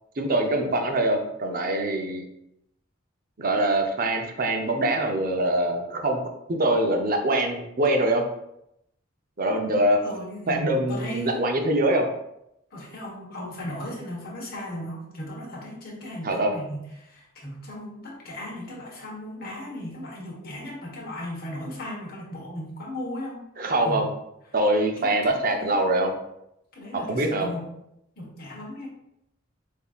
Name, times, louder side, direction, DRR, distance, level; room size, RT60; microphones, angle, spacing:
voice 1, 0.2-2.2 3.4-8.2 9.4-10.0 10.5-12.1 16.2-16.5 23.6-24.1 24.5-26.1 27.1-27.5, right 1 dB, 45° right, 3 dB, 0.6 m, -24 dB
voice 2, 10.0-11.4 12.7-23.4 23.8-24.0 25.0-25.9 26.7-27.7 28.2-28.9, left 1 dB, 50° left, -2 dB, 1.3 m, -37 dB
6.8 x 2.7 x 2.4 m, 0.81 s
head